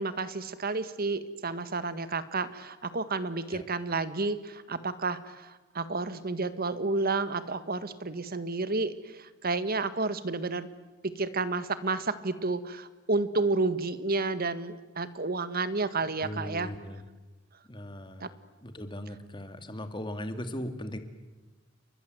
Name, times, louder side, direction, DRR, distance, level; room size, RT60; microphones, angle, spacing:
voice 1, 0.0-10.7 11.0-16.7 18.2-18.3, right 3 dB, 50° right, 13 dB, 1.7 m, -31 dB
voice 2, 16.2-17.0 17.7-18.3 18.6-21.0, left 1 dB, 25° left, 8 dB, 2.4 m, -38 dB
30.0 x 23.0 x 8.0 m, 1.2 s
head